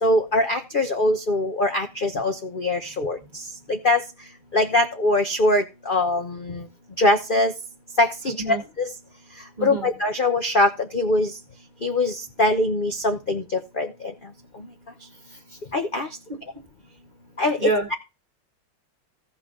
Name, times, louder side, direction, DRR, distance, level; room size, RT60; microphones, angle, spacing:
voice 1, 0.0-3.2 3.7-4.0 4.5-6.6 7.0-7.5 8.0-8.9 9.6-11.3 11.8-13.9 15.7-16.1 17.4-17.7, left 2 dB, 40° left, 0.8 m, -22 dB
voice 2, 9.6-9.9 17.6-18.0, right 3 dB, 25° right, 1.4 m, -26 dB
15.5 x 5.7 x 3.9 m
omnidirectional pair, 2.3 m